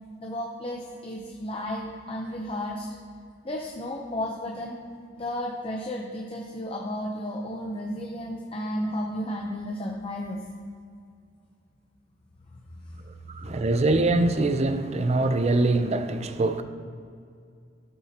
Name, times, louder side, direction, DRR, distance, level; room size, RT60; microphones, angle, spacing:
voice 1, 0.2-2.9 3.4-4.8 5.2-10.4 12.7-13.6, left 1 dB, 30° left, 0.7 m, -33 dB
voice 2, 13.3-16.6, right 2 dB, 35° right, 0.5 m, -23 dB
13.0 x 7.4 x 2.9 m
head